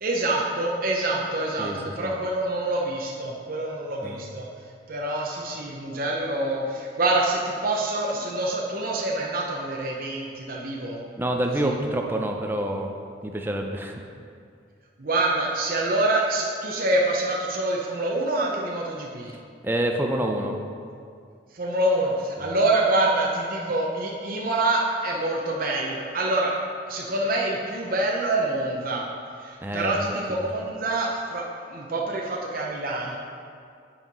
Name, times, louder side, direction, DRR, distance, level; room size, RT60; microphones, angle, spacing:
voice 1, 0.0-4.5 4.9-11.0 11.6-11.7 15.0-19.3 21.5-26.5 26.9-29.0 29.4-33.2, right 2 dB, 50° right, -2 dB, 0.8 m, -26 dB
voice 2, 1.6-2.1 4.0-4.2 11.2-12.9 13.2-13.9 19.6-20.6 29.6-30.1, right 1 dB, 10° right, 2 dB, 0.6 m, -27 dB
8.8 x 4.6 x 5.3 m, 2.3 s
head